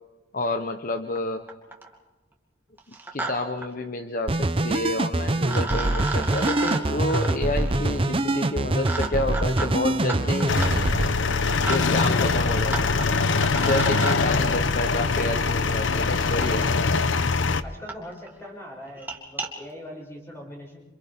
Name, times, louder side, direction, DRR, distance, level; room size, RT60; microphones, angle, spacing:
voice 1, 0.3-1.4 3.1-10.6 11.7-13.2 13.7-16.7, left 2 dB, 45° left, 6 dB, 1.0 m, -29 dB
sound 1, 1.1-1.2 1.5-1.9 2.8-3.3 3.6-3.7 5.0-5.1 5.5-14.2 15.5-15.6 16.4-16.5 17.2-17.3 17.5-17.6 17.9-18.0 18.3-18.5 18.9-19.5, right 3 dB, 10° right, 2.6 m, -34 dB
sound 2, 4.3-11.1, right 2 dB, 30° right, 0.7 m, -24 dB
sound 3, 10.5-17.6, left 4 dB, 80° left, 0.9 m, -23 dB
voice 2, 12.4-12.8 17.6-20.8, left 1 dB, 15° left, -2 dB, 7.0 m, -42 dB
28.0 x 27.5 x 3.7 m, 1.1 s
head